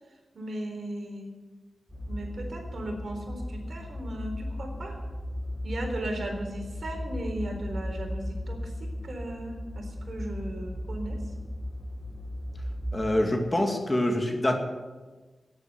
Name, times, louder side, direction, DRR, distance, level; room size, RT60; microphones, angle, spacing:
voice 1, 0.3-1.3 2.1-5.0 5.6-11.2, right 1 dB, 65° right, 2 dB, 3.8 m, -36 dB
sound 1, 1.9-12.9, left 1 dB, 25° right, 5.9 m, -36 dB
voice 2, 12.9-14.6, left 1 dB, 25° left, 4 dB, 2.4 m, -25 dB
11.0 x 10.5 x 9.4 m, 1.3 s
cardioid pair, 65°, 0 cm